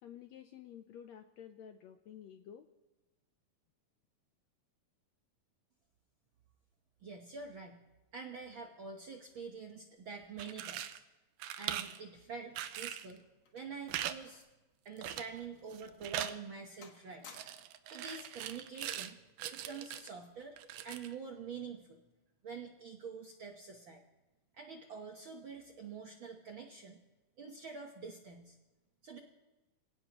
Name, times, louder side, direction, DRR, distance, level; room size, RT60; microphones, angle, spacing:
voice 1, 0.0-2.7, left 9 dB, 80° left, 7 dB, 1.6 m, -51 dB
voice 2, 7.0-7.8 8.1-11.0 11.6-13.2 13.5-14.4 14.8-17.3 17.9-19.2 19.5-22.0 22.4-24.0 24.6-27.0 27.4-28.6 29.0-29.2, right 5 dB, 60° right, 2 dB, 1.3 m, -46 dB
sound 1, 10.2-11.0 11.4-12.0 12.6-13.1 13.9-14.2 14.4-14.5 15.0-15.4 15.7-16.4 17.3-19.1 19.4-20.1 20.6-21.1, right 11 dB, 85° right, 2.3 m, -41 dB
sound 2, 13.1-14.6 14.9-15.1 15.7-15.9 16.3-16.6 16.8-17.9 18.9-19.1, left 6 dB, 60° left, 2.5 m, -59 dB
26.5 x 18.0 x 3.0 m, 1.1 s
omnidirectional pair, 3.8 m